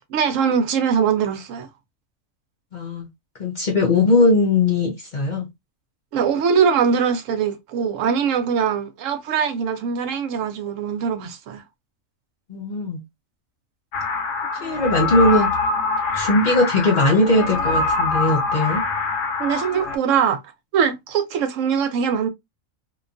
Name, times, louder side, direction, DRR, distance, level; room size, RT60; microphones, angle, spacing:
voice 1, 0.1-1.7 6.1-11.6 19.4-20.4 20.7-22.3, right 7 dB, 75° right, 0.9 m, -22 dB
voice 2, 2.7-3.1 3.4-5.5 12.5-13.0 14.6-15.5 16.1-18.8, left 2 dB, 50° left, 0.6 m, -19 dB
sound 1, 13.9-20.0, left 3 dB, 75° left, 1.0 m, -24 dB
2.9 x 2.2 x 2.4 m
omnidirectional pair, 1.4 m